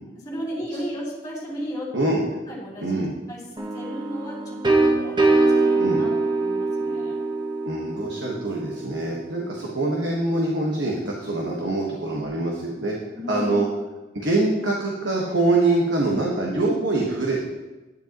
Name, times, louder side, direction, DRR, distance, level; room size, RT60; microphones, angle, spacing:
voice 1, 0.1-2.1 2.5-7.2 13.1-13.6 16.5-16.7, equal, 20° left, -5 dB, 3.3 m, -35 dB
voice 2, 2.8-3.1 5.8-6.0 7.6-12.9 13.3-13.7 14.1-17.5, right 2 dB, 80° right, -2 dB, 1.5 m, -24 dB
sound 1, 3.6-9.3, right 2 dB, 25° right, 1.1 m, -23 dB
12.0 x 10.0 x 3.0 m, 1.1 s
head